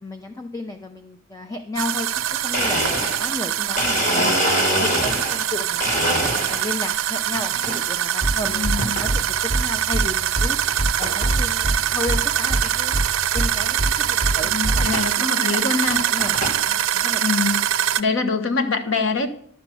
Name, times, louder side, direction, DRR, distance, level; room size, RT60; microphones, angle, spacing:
voice 1, 0.0-4.4 4.7-13.0 13.3-14.9 15.3-15.6 16.1-17.5, left 2 dB, 15° left, 6 dB, 0.6 m, -33 dB
sound 1, 1.8-18.0, right 10 dB, 70° right, 0.5 m, -23 dB
Domestic sounds home sounds, 2.5-5.5 5.8-6.8 7.3-7.8 8.8-9.1 9.7-9.8 10.7-10.8 11.0-11.3 11.8-11.9 12.1-12.2 12.6-12.7 14.0-14.1 14.9-15.1 15.7-16.6, equal, 40° left, 1.8 m, -25 dB
sound 2, 8.2-8.3 8.6-8.8 9.1-9.2 9.5-9.6 9.9-10.1 10.4-10.5 10.8-10.9 11.2-11.8 12.1-12.2 12.5-12.6 12.9-13.1 13.4-13.5 13.8-13.9 14.2-14.3 14.6-14.9, right 1 dB, 30° right, 0.8 m, -22 dB
voice 2, 8.5-9.0 14.4-16.0 17.2-17.6 18.0-19.3, left 4 dB, 65° left, 8 dB, 1.1 m, -24 dB
11.0 x 5.1 x 7.6 m, 0.63 s
head